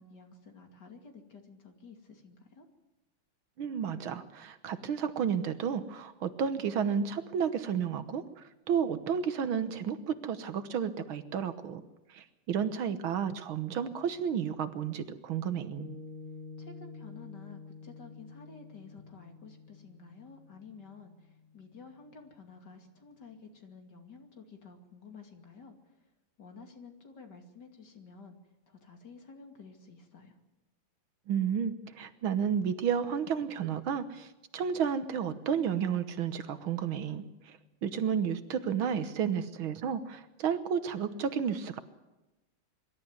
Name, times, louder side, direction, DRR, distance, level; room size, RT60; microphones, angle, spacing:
voice 1, 0.0-2.7 16.6-26.0 26.4-28.4 28.7-30.4, left 4 dB, 50° left, 5 dB, 3.1 m, -52 dB
voice 2, 3.6-11.8 12.1-15.9 31.3-34.3 34.5-41.8, right 7 dB, 70° right, 12 dB, 1.9 m, -32 dB
Piano, 15.8-22.4, left 4 dB, 20° left, 1.5 m, -49 dB
24.0 x 13.0 x 9.5 m, 1.0 s
omnidirectional pair, 2.4 m